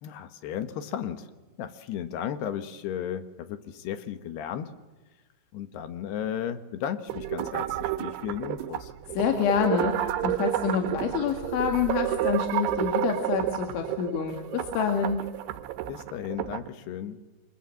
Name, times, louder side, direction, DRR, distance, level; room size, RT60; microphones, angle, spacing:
voice 1, 0.0-1.3 1.6-4.7 5.5-8.9 15.9-17.2, left 9 dB, 70° left, 10 dB, 3.1 m, -34 dB
sound 1, 7.1-16.7, right 13 dB, 80° right, 3.3 m, -30 dB
voice 2, 9.2-15.2, left 7 dB, 90° left, 4 dB, 4.4 m, -27 dB
28.5 x 25.5 x 7.7 m, 1.2 s
omnidirectional pair, 5.3 m